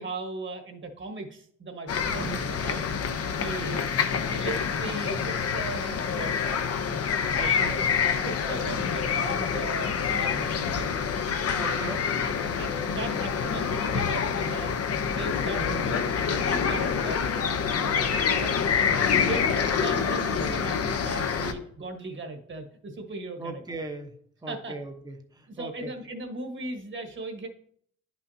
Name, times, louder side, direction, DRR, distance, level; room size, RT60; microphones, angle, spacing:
voice 1, 0.0-2.8 3.1-3.9 4.3-6.6 7.3-7.9 8.2-10.9 11.5-11.6 12.6-14.8 15.1-16.0 16.3-17.2 17.7-23.6 24.5-24.7 25.5-27.5, right 2 dB, 40° right, 4 dB, 1.4 m, -38 dB
sound 1, 1.9-21.5, left 6 dB, 55° left, 0.9 m, -27 dB
voice 2, 7.4-7.8 11.6-12.1 15.6-15.9 23.4-24.2 24.4-25.9, right 3 dB, 15° right, 4 dB, 1.0 m, -38 dB
10.5 x 6.1 x 2.8 m, 0.63 s
cardioid pair, 90°, 30 cm